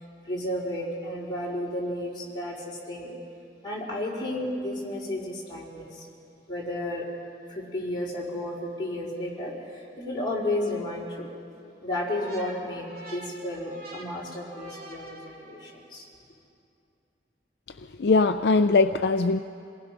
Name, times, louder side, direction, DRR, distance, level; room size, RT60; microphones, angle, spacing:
voice 1, 0.2-3.1 3.6-6.1 6.5-7.1 7.5-11.3 11.8-16.1, left 1 dB, 25° left, -5 dB, 4.6 m, -32 dB
sound 1, 12.0-15.9, right 2 dB, 55° right, 3.2 m, -45 dB
voice 2, 18.0-19.4, left 3 dB, 65° left, 8 dB, 0.5 m, -21 dB
27.5 x 19.0 x 6.1 m, 2.6 s
head